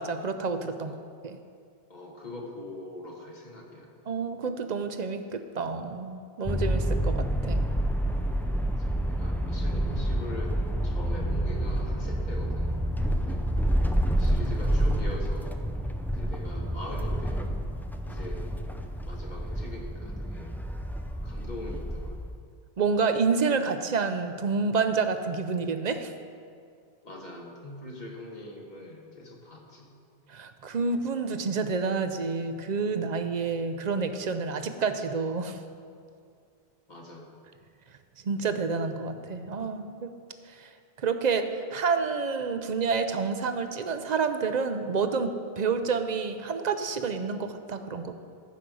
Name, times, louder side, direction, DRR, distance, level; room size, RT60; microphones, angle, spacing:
voice 1, 0.0-0.9 1.2-1.4 4.1-7.7 22.8-26.1 30.3-35.6 38.2-40.1 40.6-40.7 41.0-48.1, right 5 dB, 50° right, 8 dB, 0.7 m, -29 dB
voice 2, 1.9-3.9 8.9-10.6 10.8-12.8 13.1-13.4 14.2-15.5 16.1-17.4 18.0-18.6 19.1-20.5 21.1-22.2 27.0-29.9 36.9-37.3, left 1 dB, 45° left, 0 dB, 1.6 m, -42 dB
sound 1, 6.5-22.3, equal, 5° left, 0.3 m, -28 dB
14.5 x 5.2 x 6.2 m, 2.3 s
omnidirectional pair, 1.1 m